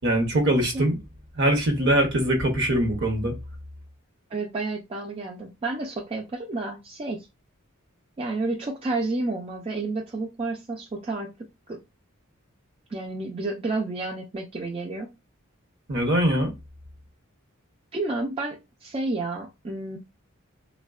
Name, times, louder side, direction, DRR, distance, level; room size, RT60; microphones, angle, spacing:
voice 1, 0.0-1.0 1.3-3.3 15.9-16.5, right 1 dB, 55° right, 0.8 m, -22 dB
voice 2, 4.3-7.3 8.2-11.3 11.7-11.8 12.9-15.1 17.9-20.0, right 2 dB, 25° right, 0.4 m, -30 dB
3.4 x 2.1 x 2.3 m
head